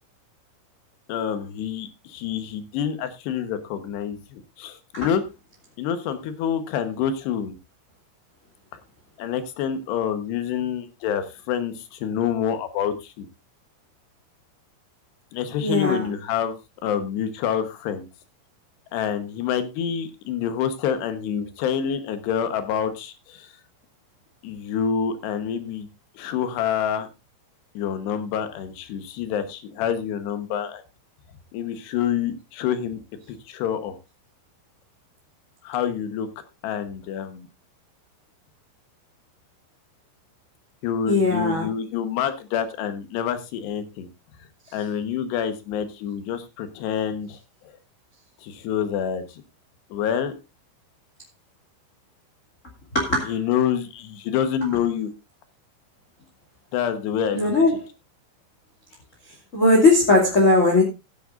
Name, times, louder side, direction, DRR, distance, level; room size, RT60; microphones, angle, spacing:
voice 1, 1.1-5.2 5.8-7.6 9.2-13.3 15.3-16.6 16.8-18.1 18.9-23.5 24.4-25.9 26.1-27.1 27.7-30.8 31.5-33.0 33.3-34.0 35.6-36.3 36.6-37.5 40.8-44.1 44.7-47.4 48.4-49.4 49.9-50.3 53.3-55.1 56.7-57.5, left 8 dB, 70° left, 3.0 m, -27 dB
voice 2, 15.6-16.1 41.0-41.7 52.9-53.3 57.3-57.7 59.5-60.8, left 2 dB, 25° left, 1.8 m, -18 dB
16.0 x 10.0 x 2.5 m
omnidirectional pair, 5.5 m